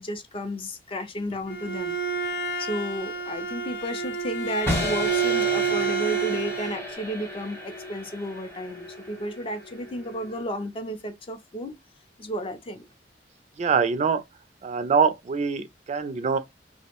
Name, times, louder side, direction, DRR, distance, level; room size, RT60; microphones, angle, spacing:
voice 1, 0.0-2.0 2.6-11.7 12.2-12.9, equal, 30° left, 0.4 m, -33 dB
Bowed string instrument, 1.3-6.8, right 5 dB, 85° left, 0.6 m, -28 dB
sound 1, 4.7-10.6, left 1 dB, 15° left, 0.9 m, -34 dB
voice 2, 13.6-14.2 14.6-16.4, right 5 dB, 40° right, 0.3 m, -24 dB
2.5 x 2.0 x 2.8 m
head